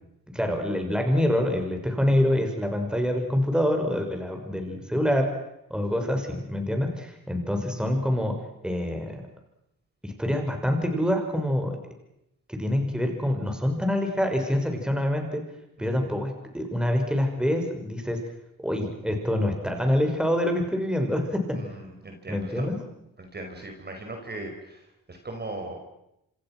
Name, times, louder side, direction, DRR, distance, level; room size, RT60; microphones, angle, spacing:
voice 1, 0.3-5.3 5.7-8.3 8.6-9.2 10.0-11.7 12.5-15.4 15.8-18.2 18.6-21.6 22.3-22.7, left 1 dB, ahead, 3 dB, 6.1 m, -26 dB
voice 2, 21.5-22.8 23.2-25.8, right 2 dB, 30° right, 3 dB, 5.0 m, -39 dB
27.5 x 26.5 x 6.3 m, 0.82 s
cardioid pair, 95°, 33 cm